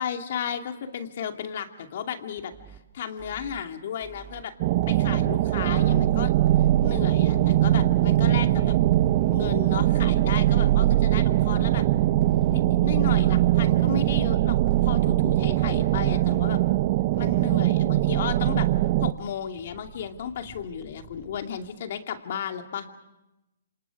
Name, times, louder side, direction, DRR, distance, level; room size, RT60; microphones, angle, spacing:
voice 1, 0.0-2.5 2.9-4.5 4.9-6.3 6.8-8.7 9.3-11.8 12.5-14.6 14.8-16.6 17.2-18.7 19.0-22.9, left 8 dB, 55° left, 5 dB, 2.4 m, -34 dB
sound 1, 2.4-2.8 3.2-3.6 4.0-4.4 4.8-5.3 5.6-6.1 6.5-6.9 7.3-7.7 8.1-8.5 8.9-9.4 9.8-10.2 10.6-11.0 11.4-11.8 12.2-12.6 13.0-13.5 13.8-14.3 14.7-15.1 15.5-15.9 16.3-16.7 17.1-17.6 17.9-18.0 18.4-18.5 18.8-18.9 19.2-19.3 19.6-19.7 20.0-20.1 20.4-20.5 20.8-20.9 21.2-21.3 21.6-21.7, right 9 dB, 20° right, 2.1 m, -47 dB
sound 2, 4.6-19.1, right 14 dB, 40° right, 0.9 m, -21 dB
Purr, 11.1-15.8 16.5-21.7, right 2 dB, 5° right, 4.9 m, -52 dB
28.0 x 27.0 x 4.9 m, 0.95 s
hypercardioid pair, 135°, 0 cm